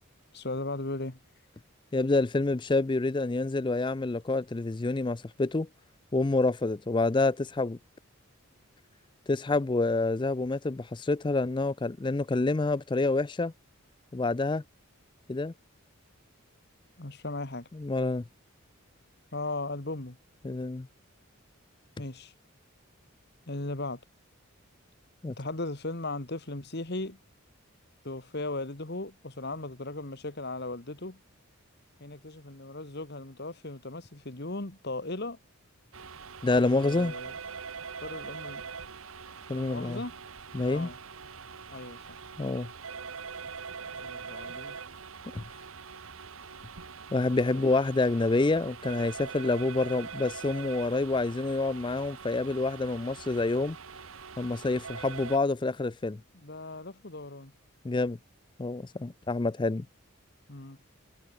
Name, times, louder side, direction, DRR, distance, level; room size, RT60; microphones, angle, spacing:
voice 1, 0.3-1.2 17.0-17.7 19.3-20.2 22.0-22.3 23.5-24.0 25.3-27.2 28.0-31.2 32.0-35.4 36.7-37.3 38.0-38.6 39.5-40.2 40.6-41.0 41.7-42.2 43.9-44.8 47.5-47.7 56.3-57.5 60.5-60.8, left 2 dB, 50° left, 1.7 m, -37 dB
voice 2, 1.9-5.7 6.1-7.8 9.3-13.5 14.1-14.6 15.3-15.5 17.7-18.3 20.4-20.9 25.2-25.3 36.4-37.1 39.5-40.0 40.5-40.9 42.4-42.7 45.3-45.4 47.1-53.8 54.4-56.2 57.8-58.2 58.6-59.9, left 3 dB, 20° left, 0.4 m, -27 dB
sound 1, 35.9-55.4, right 5 dB, 70° right, 1.3 m, -43 dB
head